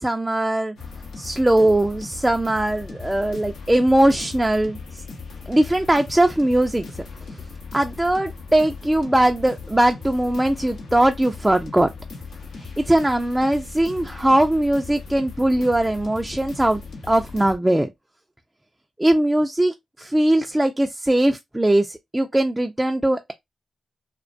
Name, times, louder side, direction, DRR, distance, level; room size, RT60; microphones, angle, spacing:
voice 1, 0.0-0.8 1.2-5.0 5.5-7.1 7.7-11.9 12.6-16.8 17.1-17.9 19.0-23.3, right 1 dB, 15° right, 0.3 m, -20 dB
sound 1, 0.8-17.6, left 4 dB, 80° left, 0.7 m, -38 dB
2.3 x 2.2 x 2.4 m
supercardioid pair, 45°, 0 cm